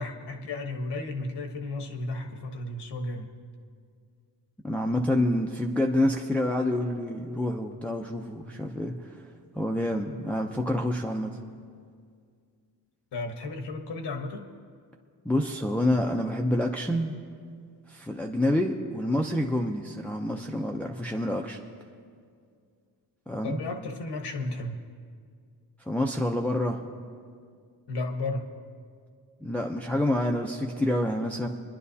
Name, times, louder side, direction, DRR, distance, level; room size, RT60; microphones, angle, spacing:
voice 1, 0.0-3.3 13.1-14.5 23.4-24.8 27.9-28.5, left 2 dB, 75° left, 5 dB, 1.3 m, -33 dB
voice 2, 4.6-9.2 9.5-11.4 15.2-17.2 17.9-21.6 23.3-23.6 25.9-26.8 29.4-31.5, left 1 dB, 5° left, 0 dB, 0.6 m, -27 dB
26.5 x 10.5 x 2.8 m, 2.1 s
cardioid pair, 115°, 41 cm